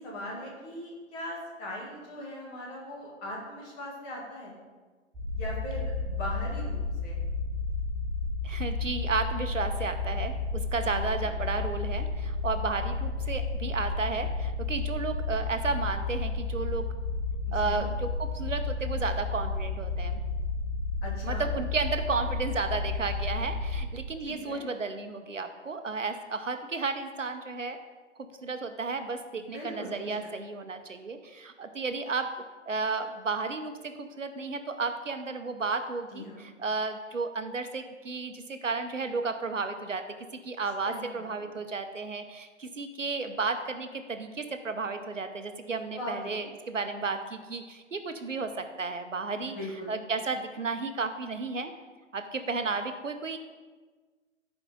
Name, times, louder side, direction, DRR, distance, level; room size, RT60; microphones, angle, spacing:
voice 1, 0.0-4.6 5.3-7.2 10.9-11.3 17.5-17.9 21.0-21.5 24.2-24.6 29.5-30.2 36.1-36.5 40.8-41.5 46.0-46.4 49.3-50.0, left 1 dB, 25° left, -3 dB, 2.2 m, -40 dB
sound 1, 5.1-23.8, left 3 dB, 5° right, 2.9 m, -32 dB
voice 2, 8.4-16.9 17.5-20.2 21.2-27.8 28.4-32.3 32.7-40.1 40.4-49.6 49.9-51.7 52.1-53.4, right 4 dB, 80° right, 8 dB, 0.9 m, -33 dB
14.5 x 4.9 x 3.7 m, 1.4 s
figure-of-eight pair, 125°, 37 cm